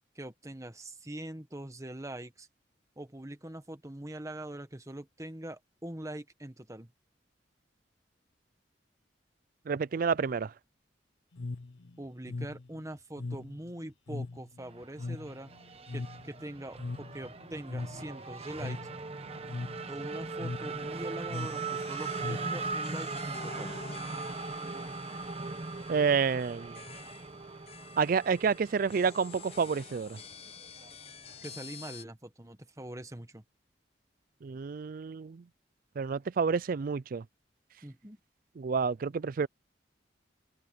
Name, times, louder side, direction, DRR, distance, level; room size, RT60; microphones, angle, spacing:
voice 1, 0.1-2.5 3.0-6.9 12.0-15.5 15.9-18.8 19.9-23.8 31.4-33.4 37.8-38.2, right 1 dB, 15° right, 1.4 m, -43 dB
voice 2, 9.7-10.5 25.9-26.8 28.0-30.2 34.4-35.4 36.0-37.2 38.6-39.5, right 5 dB, 50° right, 0.4 m, -29 dB
sound 1, 11.3-23.0, left 3 dB, 90° left, 0.8 m, -41 dB
Race car auto racing / Accelerating revving vroom, 14.6-31.6, right 3 dB, 35° right, 1.2 m, -40 dB
sound 2, 21.3-32.0, left 6 dB, 35° left, 0.9 m, -50 dB
head